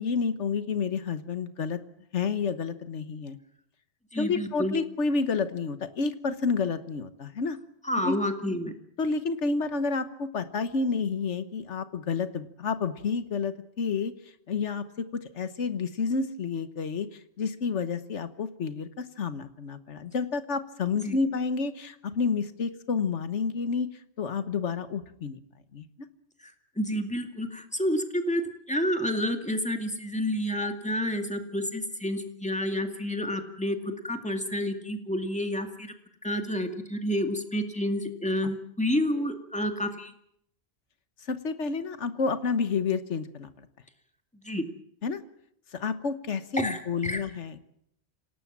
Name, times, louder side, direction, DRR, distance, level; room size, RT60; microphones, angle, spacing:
voice 1, 0.0-1.8 2.1-3.4 4.2-7.6 8.0-8.2 9.0-14.1 14.5-23.9 24.2-25.4 25.7-25.8 41.3-43.7 45.0-45.2 45.7-47.6, left 5 dB, 90° left, 11 dB, 1.5 m, -30 dB
voice 2, 4.1-4.7 7.8-8.7 21.0-21.2 26.4-28.4 28.7-35.9 36.2-40.1 44.4-44.6 46.6-47.2, equal, 5° left, 5 dB, 2.2 m, -29 dB
27.0 x 18.0 x 7.4 m, 0.74 s
omnidirectional pair, 1.2 m